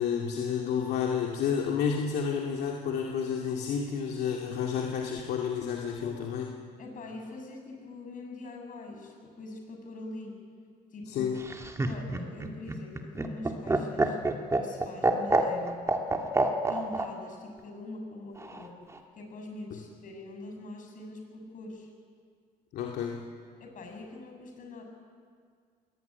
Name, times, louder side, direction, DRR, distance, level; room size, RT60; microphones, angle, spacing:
voice 1, 0.0-6.5 11.1-11.4 22.7-23.3, left 7 dB, 75° left, 0 dB, 2.3 m, -30 dB
voice 2, 6.8-10.4 10.9-11.3 11.8-14.2 14.6-15.8 16.7-18.7 19.1-21.9 23.6-24.8, left 2 dB, 50° left, 2 dB, 6.9 m, -43 dB
Laughter, 11.4-17.1 18.4-19.0, right 2 dB, 15° right, 2.1 m, -27 dB
22.0 x 17.5 x 9.6 m, 2.1 s
cardioid pair, 110°, 17 cm